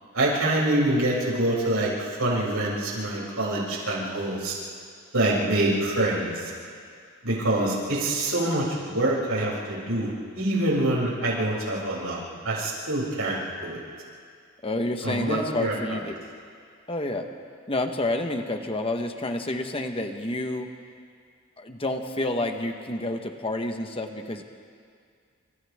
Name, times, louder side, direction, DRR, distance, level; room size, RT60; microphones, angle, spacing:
voice 1, 0.1-4.5 5.1-6.5 7.2-13.8 15.0-15.7, right 1 dB, 85° right, -5 dB, 7.2 m, -25 dB
voice 2, 14.6-16.2 16.9-17.3 17.7-20.7 21.6-24.4, left 1 dB, 25° left, 5 dB, 1.3 m, -29 dB
30.0 x 28.0 x 3.7 m, 2.2 s
head